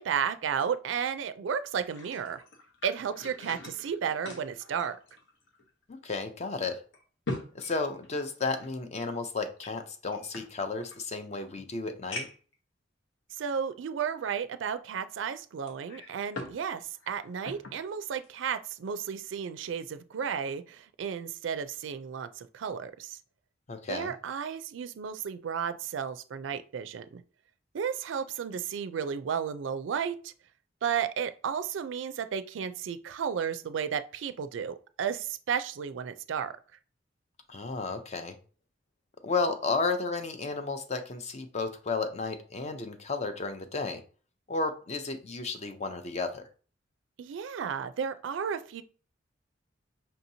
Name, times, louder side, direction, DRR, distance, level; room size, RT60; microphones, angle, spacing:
voice 1, 0.0-2.4 2.8-5.0 13.4-23.2 23.9-27.2 27.7-30.3 30.8-36.5 47.2-48.8, right 7 dB, 85° right, 0.4 m, -33 dB
sound 1, 1.7-5.7 6.0-6.1 6.7-8.7 9.6-11.0 11.6-11.7 12.1-12.5 13.3-13.4 15.7-16.6 16.9-17.8 18.2-18.4, left 2 dB, 80° left, 0.9 m, -42 dB
voice 2, 5.9-6.8 7.5-12.3 23.7-24.1 37.5-38.4 39.2-44.0 44.5-46.5, left 3 dB, 35° left, 0.5 m, -33 dB
5.4 x 2.8 x 2.7 m
head